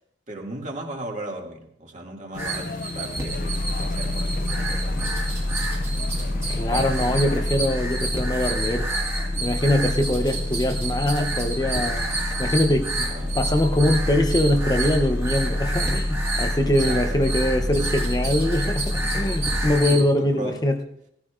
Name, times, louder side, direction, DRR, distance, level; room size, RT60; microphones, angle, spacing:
voice 1, 0.3-5.2 5.7-7.2 10.2-10.3 13.1-13.3 16.6-17.2 19.9-20.6, right 1 dB, 40° right, 2.2 m, -37 dB
sound 1, 2.3-7.6, left 3 dB, 45° left, 0.4 m, -35 dB
sound 2, 2.4-20.0, right 2 dB, 15° right, 1.9 m, -31 dB
sound 3, 3.3-19.8, left 1 dB, 90° left, 1.3 m, -28 dB
voice 2, 6.5-8.9 9.4-12.1 12.4-13.1 13.3-20.8, left 1 dB, 20° left, 0.7 m, -23 dB
18.5 x 14.5 x 2.5 m
head